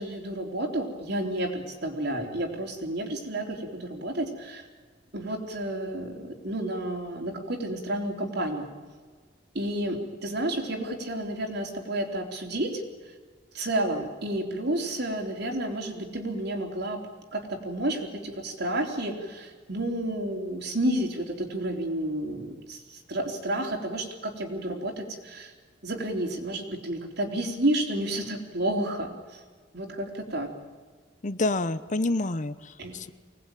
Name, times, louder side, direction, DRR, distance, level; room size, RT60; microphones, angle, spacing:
voice 1, 0.0-4.7 5.1-8.7 9.5-13.1 13.5-17.0 17.3-25.5 25.8-29.4 29.7-30.5 32.8-33.0, right 1 dB, 65° right, 3 dB, 3.7 m, -31 dB
voice 2, 31.2-33.1, left 2 dB, 45° left, 14 dB, 0.9 m, -28 dB
24.5 x 19.0 x 9.2 m, 1.5 s
head